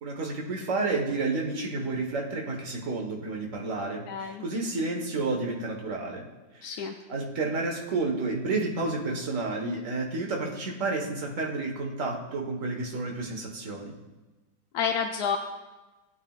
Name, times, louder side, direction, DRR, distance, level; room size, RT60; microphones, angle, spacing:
voice 1, 0.0-6.3 6.5-6.8 7.1-13.9, right 3 dB, 45° right, 1 dB, 1.7 m, -30 dB
voice 2, 4.1-4.4 6.6-7.0 14.7-15.4, left 7 dB, 70° left, 4 dB, 1.0 m, -29 dB
17.0 x 9.4 x 2.4 m, 1.2 s
omnidirectional pair, 2.1 m